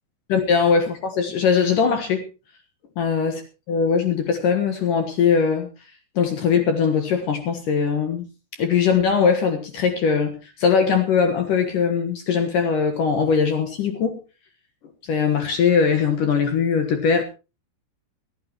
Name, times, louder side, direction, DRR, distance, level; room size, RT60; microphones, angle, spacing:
voice 1, 0.3-2.3 3.0-3.4 3.7-5.7 6.2-8.3 8.6-14.2 15.0-17.2, left 6 dB, 65° left, 6 dB, 2.1 m, -20 dB
22.5 x 12.5 x 3.0 m, 0.30 s
omnidirectional pair, 5.9 m